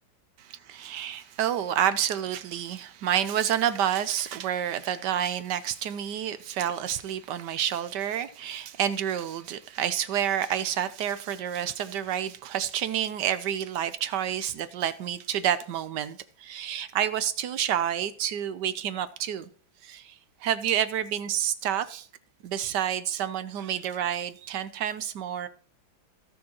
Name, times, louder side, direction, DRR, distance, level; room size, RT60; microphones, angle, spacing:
voice 1, 0.4-19.5 19.8-22.1 22.4-25.5, right 10 dB, 70° right, 1.2 m, -29 dB
17.5 x 6.3 x 2.9 m
omnidirectional pair, 2.1 m